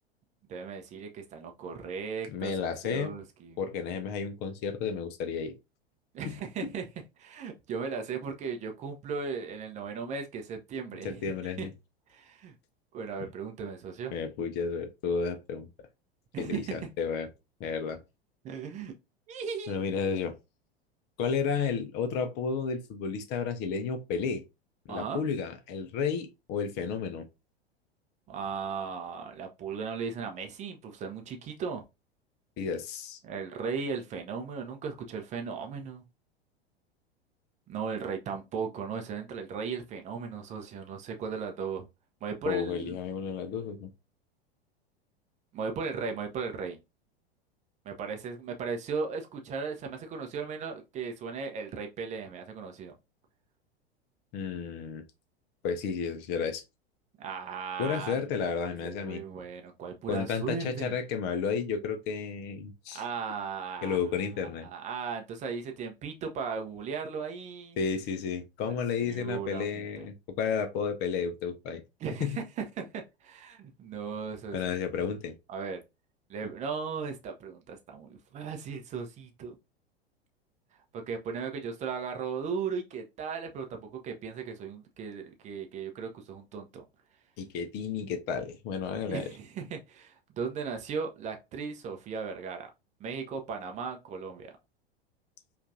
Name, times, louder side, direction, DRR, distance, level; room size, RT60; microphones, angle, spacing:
voice 1, 0.5-3.6 6.1-6.9 7.2-11.2 11.6-11.7 12.1-12.5 12.9-14.1 16.3-16.8 18.4-18.9 19.3-19.8 24.9-25.2 28.3-31.8 33.2-36.0 37.7-41.9 42.2-43.0 45.5-46.8 47.8-52.9 57.2-58.5 58.8-61.0 62.9-64.0 64.6-67.8 68.7-68.8 69.0-70.1 72.0-74.6 75.5-75.8 76.3-79.5 80.9-86.8 89.1-92.7 93.0-94.5, right 5 dB, 25° right, 0.6 m, -37 dB
voice 2, 2.3-3.1 3.6-5.5 6.2-6.4 11.0-11.7 14.1-15.7 16.4-17.3 17.6-18.0 19.7-20.3 21.2-24.4 24.9-27.3 32.6-33.2 42.5-43.9 54.3-55.0 55.6-56.6 57.8-59.2 60.1-63.0 63.8-64.7 67.8-71.8 72.2-72.4 74.5-75.3 87.4-89.2, left 6 dB, 30° left, 0.6 m, -32 dB
5.1 x 2.5 x 2.5 m
figure-of-eight pair, 90°, 32 cm